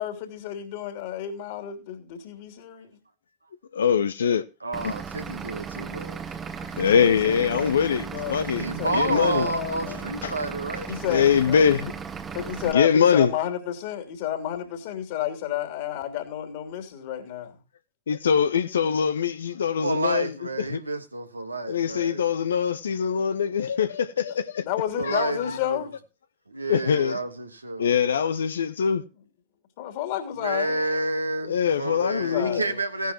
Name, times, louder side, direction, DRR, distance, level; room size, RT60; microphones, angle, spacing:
voice 1, 0.0-3.0 6.8-10.1 10.9-11.8 12.3-17.5 24.6-25.9 29.8-30.8 32.2-32.8, left 10 dB, 50° left, 3.1 m, -31 dB
voice 2, 3.7-4.4 4.8-4.9 6.8-9.5 10.2-10.3 11.1-11.9 12.7-13.3 18.1-20.3 20.6-20.8 21.7-24.6 25.0-25.2 25.5-25.6 26.7-27.2 27.8-29.0 31.4-32.7, left 7 dB, 65° left, 0.6 m, -23 dB
voice 3, 4.6-6.2 6.6-6.8 8.5-10.9 19.8-22.4 25.0-25.8 26.5-27.9 30.3-33.1, right 2 dB, 80° right, 1.6 m, -30 dB
Vehicle / Engine, 4.7-12.7, right 6 dB, 20° right, 1.3 m, -36 dB
16.5 x 10.5 x 3.0 m
figure-of-eight pair, 90°, 0 cm